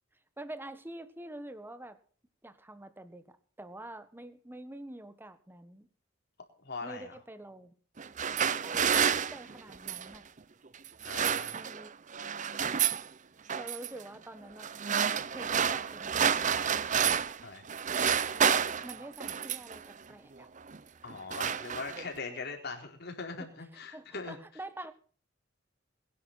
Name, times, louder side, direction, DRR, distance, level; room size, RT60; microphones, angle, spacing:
voice 1, 0.4-2.0 2.4-5.9 6.8-7.7 8.6-10.3 11.5-11.9 13.5-14.7 15.3-16.7 18.8-20.5 23.4-23.5 23.9-24.9, right 1 dB, 10° right, 11 dB, 1.4 m, -46 dB
voice 2, 6.6-7.2 11.0-11.6 17.4-17.6 21.0-24.4, left 4 dB, 55° left, 3 dB, 4.1 m, -41 dB
sound 1, 8.0-10.2 10.9-11.9 12.1-13.1 13.5-13.9 14.6-17.4 17.7-19.8 20.6-20.8 21.1-22.2, right 7 dB, 40° right, 0.7 m, -29 dB
22.0 x 10.5 x 4.2 m, 0.43 s
head